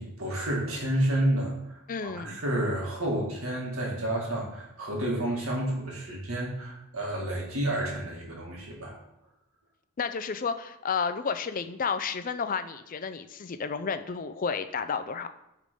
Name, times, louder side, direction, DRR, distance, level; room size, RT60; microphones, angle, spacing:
voice 1, 0.0-9.0, right 1 dB, 70° right, -2 dB, 2.1 m, -30 dB
voice 2, 1.9-2.4 10.0-15.3, left 5 dB, 40° left, 10 dB, 0.4 m, -31 dB
8.3 x 3.7 x 5.2 m, 0.88 s
head